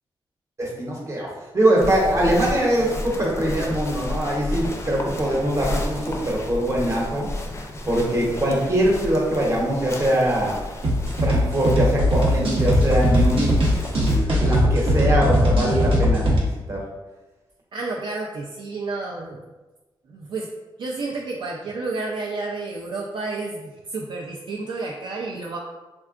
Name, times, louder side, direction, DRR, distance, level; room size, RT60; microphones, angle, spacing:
voice 1, 0.6-1.3 1.5-7.3 7.8-10.5 11.2-16.8, right 1 dB, 35° right, -3 dB, 0.8 m, -22 dB
sound 1, 1.8-14.2, left 1 dB, 30° left, 0.4 m, -32 dB
sound 2, 10.8-16.4, equal, 80° right, 0.8 m, -19 dB
voice 2, 17.7-19.4 20.1-20.5 20.8-25.6, right 3 dB, 65° right, -2 dB, 0.3 m, -30 dB
3.5 x 2.2 x 2.3 m, 1.1 s
cardioid pair, 95°, 9 cm